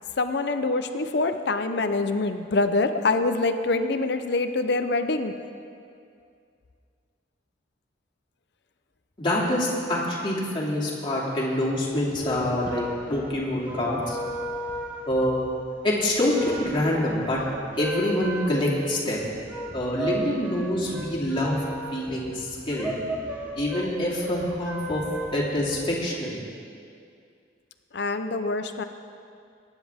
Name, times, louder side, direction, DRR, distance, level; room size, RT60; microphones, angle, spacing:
voice 1, 0.2-5.3 27.9-28.8, left 3 dB, 65° left, 8 dB, 0.7 m, -25 dB
voice 2, 9.2-14.2 15.1-15.4 15.8-17.4 17.8-19.3 19.7-21.6 21.9-23.0 23.6-25.0 25.3-26.4, left 1 dB, 30° left, -5 dB, 2.6 m, -26 dB
sound 1, 12.0-25.9, right 1 dB, 10° right, 1.3 m, -35 dB
22.0 x 10.0 x 3.6 m, 2.4 s
head